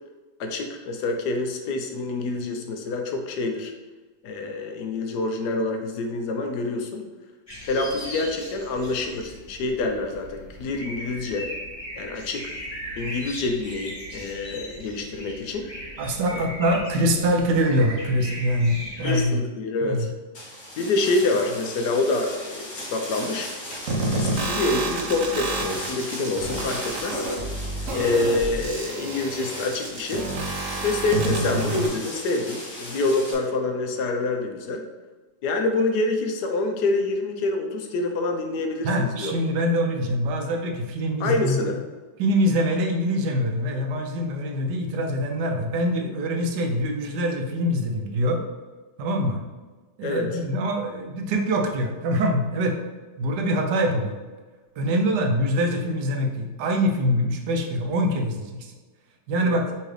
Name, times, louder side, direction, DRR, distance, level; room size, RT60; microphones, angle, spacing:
voice 1, 0.4-3.7 4.2-7.0 7.6-11.5 12.0-12.5 13.0-15.7 16.3-16.5 19.0-20.1 20.8-23.5 24.1-27.2 27.9-30.3 30.8-34.8 35.4-39.3 41.2-41.8 50.0-50.4 59.4-59.6, left 2 dB, 75° left, 4 dB, 1.1 m, -26 dB
sound 1, 7.5-19.2, equal, 25° left, 0.8 m, -38 dB
voice 2, 16.0-19.4 19.8-20.1 38.8-41.6 42.2-48.4 49.0-49.4 50.0-52.8 53.2-54.2 54.8-58.7 59.3-59.6, equal, 75° right, 3 dB, 1.2 m, -24 dB
sound 2, 20.3-33.3, left 1 dB, 45° left, 1.5 m, -38 dB
sound 3, 23.9-31.9, right 2 dB, 60° right, 0.9 m, -29 dB
5.7 x 2.8 x 3.2 m, 1.3 s
omnidirectional pair, 1.9 m